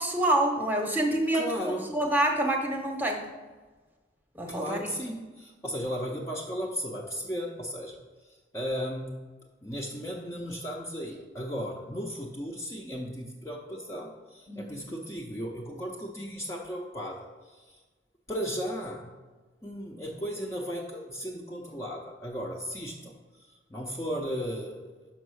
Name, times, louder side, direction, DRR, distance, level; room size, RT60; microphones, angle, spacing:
voice 1, 0.0-1.5 1.9-3.3 4.3-4.9 14.5-14.8, right 1 dB, 10° right, 2 dB, 0.8 m, -27 dB
voice 2, 1.3-1.9 4.5-9.2 9.6-17.8 18.3-19.1 19.6-23.1 23.7-24.9, equal, 15° left, -1 dB, 0.6 m, -35 dB
5.9 x 5.3 x 6.2 m, 1.3 s
head